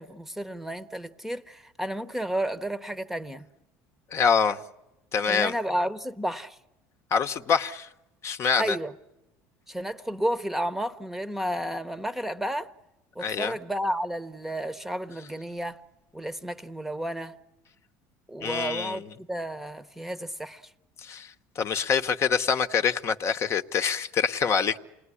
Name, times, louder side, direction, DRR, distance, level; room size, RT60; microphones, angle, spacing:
voice 1, 0.0-3.5 5.3-6.6 8.6-8.9 9.7-12.7 13.2-15.8 16.1-17.4 18.3-20.6, right 1 dB, 5° right, 0.9 m, -32 dB
voice 2, 4.1-4.6 5.1-5.5 7.1-7.9 8.2-8.8 13.2-13.5 18.4-19.1 21.0-24.8, left 6 dB, 40° left, 1.0 m, -25 dB
28.0 x 20.0 x 9.8 m
supercardioid pair, 110°, 7 cm